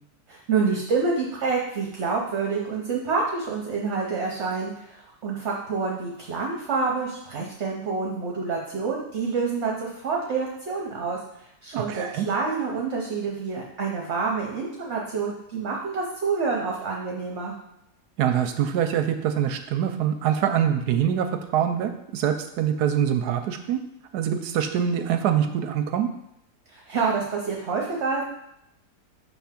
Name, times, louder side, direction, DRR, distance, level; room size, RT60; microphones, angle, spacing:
voice 1, 0.3-11.2 11.6-17.5 26.7-28.2, right 4 dB, 50° right, -2 dB, 1.0 m, -27 dB
voice 2, 11.7-12.3 18.2-21.3 21.5-23.8 24.1-26.1, right 9 dB, 75° right, 7 dB, 1.1 m, -24 dB
6.3 x 3.5 x 5.8 m, 0.81 s
omnidirectional pair, 1.8 m